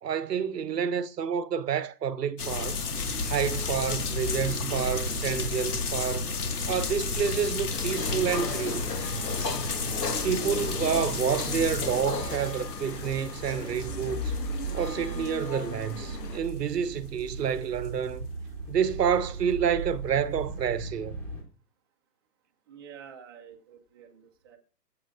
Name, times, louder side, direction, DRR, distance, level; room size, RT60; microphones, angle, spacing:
voice 1, 0.0-2.9 3.3-6.3 6.7-9.0 10.2-14.3 14.7-18.3 18.7-21.2, right 7 dB, 75° right, 0.9 m, -29 dB
sound 1, 2.4-16.2 16.5-16.6 17.2-17.6 17.9-18.0, left 4 dB, 65° left, 2.0 m, -33 dB
sound 2, 2.9-21.4, right 2 dB, 5° left, 1.2 m, -39 dB
sound 3, 7.7-16.4, left 3 dB, 80° left, 1.8 m, -37 dB
voice 2, 22.7-24.6, right 7 dB, 15° right, 0.6 m, -48 dB
22.5 x 7.5 x 2.5 m
hypercardioid pair, 150°, 48 cm